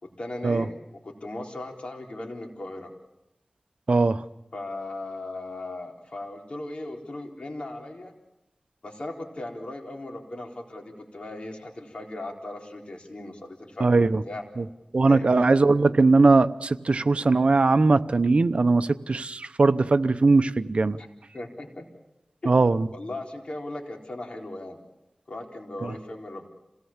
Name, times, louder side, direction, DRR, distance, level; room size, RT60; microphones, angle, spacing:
voice 1, 0.0-2.9 4.5-8.1 8.8-14.4 15.0-15.5 21.0-21.1 21.3-21.9 22.4-24.8 25.3-26.5, left 2 dB, 65° left, 1 dB, 4.0 m, -37 dB
voice 2, 3.9-4.2 13.8-14.2 14.9-21.0 22.5-22.9, right 3 dB, 70° right, 11 dB, 0.8 m, -20 dB
27.5 x 18.0 x 7.3 m, 0.94 s
wide cardioid pair, 60°, 2 cm